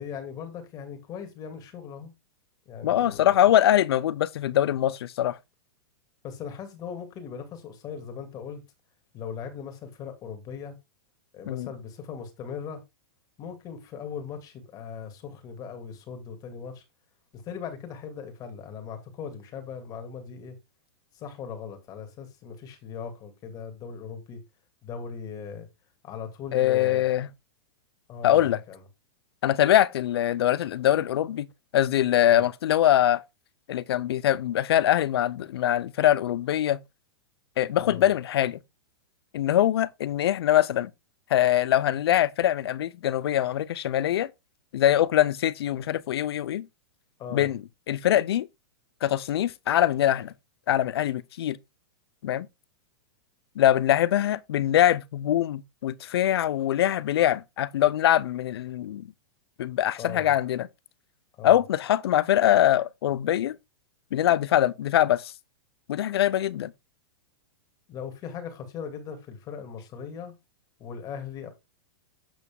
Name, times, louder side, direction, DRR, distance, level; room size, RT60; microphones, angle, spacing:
voice 1, 0.0-2.1 2.7-3.5 6.2-8.6 9.1-10.8 11.3-12.8 13.4-16.8 17.3-20.6 21.1-24.4 24.8-25.7 26.0-27.0 28.1-28.8 32.3-32.4 37.8-38.1 47.2-47.5 60.0-60.3 61.4-61.6 67.9-70.3 70.8-71.5, left 6 dB, 30° left, 2.4 m, -39 dB
voice 2, 2.8-5.4 11.5-11.7 26.5-27.3 28.2-28.6 29.4-31.5 31.7-33.2 33.7-36.8 37.6-38.6 39.3-40.9 41.3-44.3 44.7-46.7 47.3-47.6 47.9-48.5 49.0-50.3 50.7-51.6 52.2-52.5 53.6-59.1 59.6-60.7 61.4-63.6 64.1-65.3 65.9-66.7, left 12 dB, 75° left, 0.7 m, -23 dB
8.3 x 6.0 x 3.6 m
hypercardioid pair, 145°, 13 cm